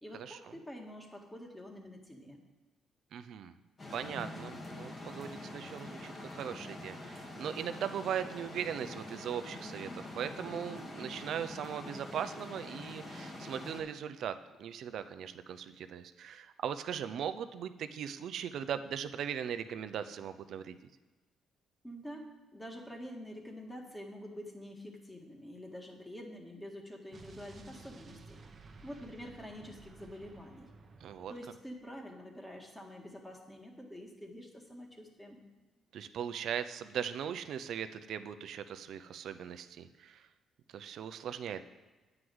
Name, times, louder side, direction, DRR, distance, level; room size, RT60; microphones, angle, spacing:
voice 1, 0.0-2.4 21.8-22.3 22.5-30.7 31.3-35.4, equal, 10° left, 1 dB, 1.8 m, -47 dB
voice 2, 3.1-3.5 3.9-20.8 31.0-31.3 35.9-40.2 40.7-41.6, right 8 dB, 70° right, 10 dB, 0.6 m, -39 dB
sound 1, 3.8-13.8, left 2 dB, 35° left, 2.1 m, -45 dB
Explosion, 27.1-31.9, right 4 dB, 40° right, 1.0 m, -55 dB
9.6 x 4.9 x 7.9 m, 1.3 s
cardioid pair, 90°, 0 cm